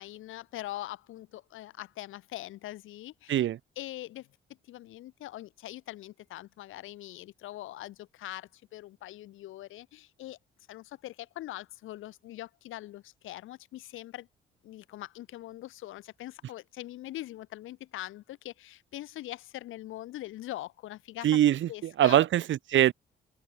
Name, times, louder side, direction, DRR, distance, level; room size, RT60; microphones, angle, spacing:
voice 1, 0.0-3.4 3.8-4.3 4.7-10.4 10.7-14.3 14.6-21.3 21.7-22.2, left 15 dB, 90° left, 7.3 m, -42 dB
voice 2, 21.2-21.7 22.0-22.9, right 12 dB, 75° right, 2.7 m, -22 dB
cardioid pair, 90°, 20 cm